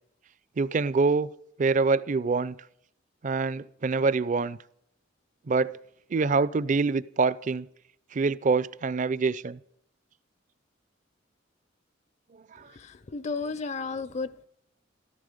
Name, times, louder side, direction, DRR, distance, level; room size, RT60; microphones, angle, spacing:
voice 1, 0.6-1.3 1.6-2.6 3.2-4.6 5.5-5.7 6.1-7.7 8.1-9.6 12.6-12.7, right 4 dB, 40° right, 0.4 m, -25 dB
voice 2, 12.7-14.4, left 4 dB, 35° left, 0.5 m, -33 dB
14.5 x 13.0 x 5.2 m
head